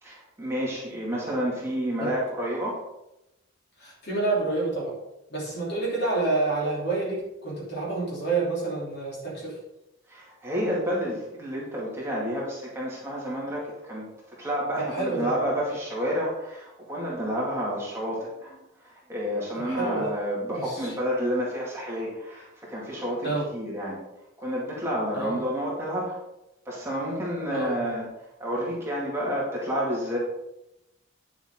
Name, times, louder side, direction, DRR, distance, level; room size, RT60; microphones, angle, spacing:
voice 1, 0.0-2.8 10.1-24.0 24.4-26.2 26.7-28.1 28.4-30.2, equal, 15° right, -5 dB, 2.1 m, -30 dB
voice 2, 3.8-4.9 5.3-9.5 14.9-15.3 19.7-20.1 20.5-20.9 23.2-23.5 25.1-25.4 27.5-27.7, right 3 dB, 55° left, -4 dB, 3.2 m, -28 dB
9.4 x 7.1 x 3.7 m, 0.90 s
head